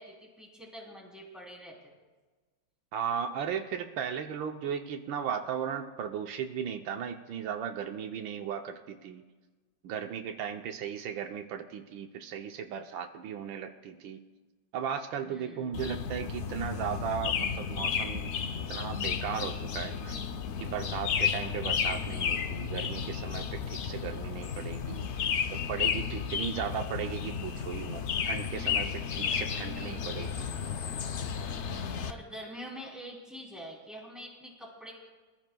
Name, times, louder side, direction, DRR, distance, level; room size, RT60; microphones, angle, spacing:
voice 1, 0.0-1.9 15.2-15.9 32.1-34.9, equal, ahead, -3 dB, 3.1 m, -45 dB
voice 2, 2.9-9.2 9.8-14.2 14.7-18.3 18.7-20.2 20.6-30.5, right 8 dB, 85° right, 5 dB, 1.5 m, -36 dB
sound 1, 15.7-32.1, left 7 dB, 80° left, 0.6 m, -33 dB
23.5 x 15.0 x 2.3 m, 1.3 s
omnidirectional pair, 2.1 m